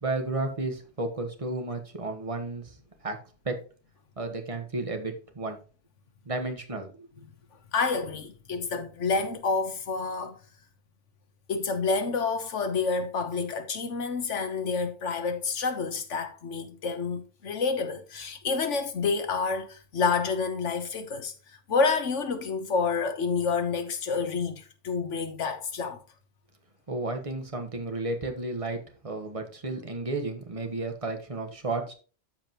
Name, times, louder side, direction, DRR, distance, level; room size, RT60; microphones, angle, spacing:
voice 1, 0.0-2.8 3.0-3.2 3.4-3.6 4.2-5.6 6.2-7.1 26.9-31.9, right 2 dB, 30° right, 1.3 m, -32 dB
voice 2, 7.7-10.4 11.5-21.3 21.7-26.0, left 4 dB, 85° left, 1.5 m, -28 dB
13.0 x 5.1 x 3.0 m
omnidirectional pair, 1.2 m